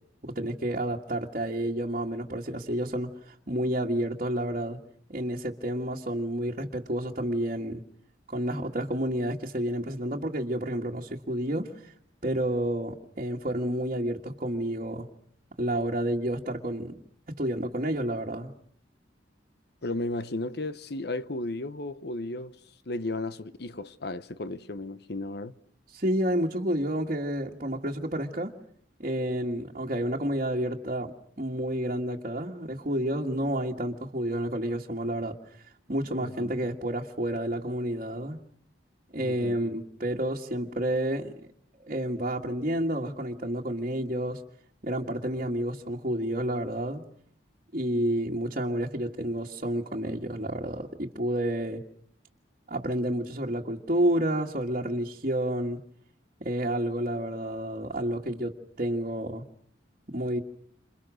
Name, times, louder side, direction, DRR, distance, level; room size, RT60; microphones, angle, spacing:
voice 1, 0.2-4.8 5.1-7.8 8.3-11.9 12.2-15.1 15.6-17.0 17.3-18.5 25.9-28.5 29.0-35.4 35.9-38.4 39.1-41.3 41.8-44.4 44.8-47.0 47.7-51.8 52.7-55.8 56.4-59.4 60.1-60.4, right 1 dB, 45° right, 1.9 m, -30 dB
voice 2, 19.8-22.6 22.9-25.5 36.2-36.5 39.2-39.6, left 2 dB, 60° left, 1.1 m, -34 dB
29.5 x 27.5 x 6.3 m
head